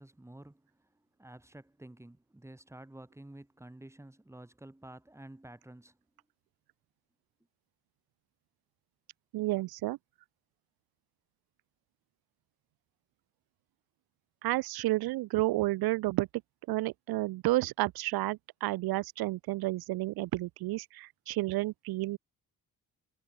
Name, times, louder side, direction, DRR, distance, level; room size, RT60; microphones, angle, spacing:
voice 1, 0.0-6.0, right 1 dB, 5° right, 4.5 m, -51 dB
voice 2, 9.3-10.0 14.4-16.3 16.7-22.2, right 18 dB, 85° right, 0.5 m, -31 dB
cardioid pair, 130°, 36 cm